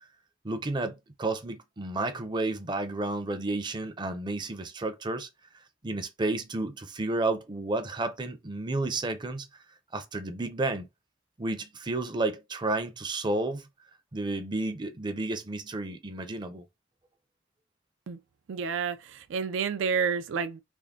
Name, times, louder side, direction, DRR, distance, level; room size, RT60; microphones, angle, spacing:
voice 1, 0.4-5.3 5.8-9.5 9.9-10.9 11.4-13.7 14.1-16.6, right 2 dB, 25° right, 0.5 m, -31 dB
voice 2, 18.5-20.6, right 6 dB, 80° right, 0.4 m, -29 dB
3.5 x 2.1 x 3.6 m
head